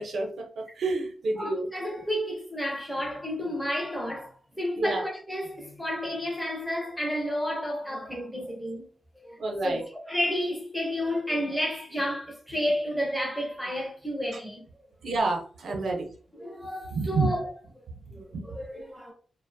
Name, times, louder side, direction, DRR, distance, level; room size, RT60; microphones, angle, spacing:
voice 1, 0.0-1.7 4.7-5.0 9.4-9.8 15.0-16.1 16.9-17.3 18.1-18.5, right 3 dB, 65° right, 0.6 m, -29 dB
voice 2, 1.4-8.9 9.2-9.4 9.6-9.8 10.1-14.6 16.4-17.5 18.1-18.3 18.5-19.1, equal, ahead, 0.5 m, -31 dB
2.5 x 2.0 x 2.5 m
wide cardioid pair, 175°, 0 cm